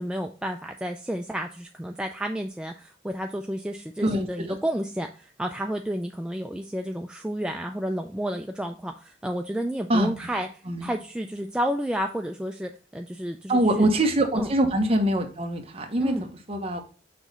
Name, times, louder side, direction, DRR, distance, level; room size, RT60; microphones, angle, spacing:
voice 1, 0.0-10.5 10.8-13.9 14.4-14.5 16.0-16.3, equal, 5° right, 3 dB, 0.3 m, -31 dB
voice 2, 4.0-4.6 9.9-10.2 10.7-10.9 13.5-16.8, right 1 dB, 30° right, 3 dB, 1.0 m, -24 dB
6.1 x 3.1 x 5.4 m, 0.37 s
head